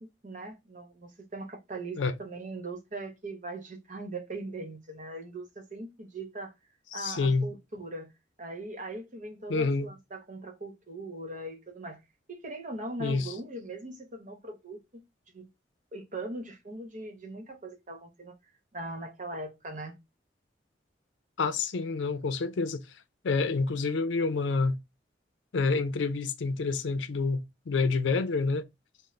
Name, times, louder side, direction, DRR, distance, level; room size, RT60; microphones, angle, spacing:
voice 1, 0.0-6.5 6.9-8.1 8.4-12.0 12.3-14.8 15.3-15.5 15.9-18.4 18.7-20.0, right 2 dB, 45° right, 0.9 m, -40 dB
voice 2, 6.9-7.5 9.5-9.9 13.0-13.3 21.4-22.8 23.2-24.8 25.5-28.7, left 4 dB, 85° left, 0.5 m, -28 dB
4.0 x 2.1 x 3.2 m
head